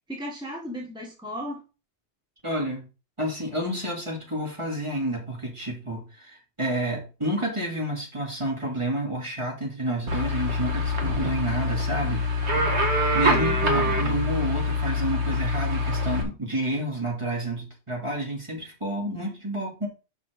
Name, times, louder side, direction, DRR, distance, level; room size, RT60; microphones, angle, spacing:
voice 1, 0.1-1.6 13.3-14.1, equal, 5° right, -3 dB, 1.6 m, -36 dB
voice 2, 2.4-2.9 3.2-12.3 13.1-19.9, right 1 dB, 25° right, -1 dB, 2.7 m, -29 dB
sound 1, 10.1-16.2, left 1 dB, 70° right, 1.9 m, -25 dB
6.0 x 5.7 x 5.2 m, 0.32 s
omnidirectional pair, 1.2 m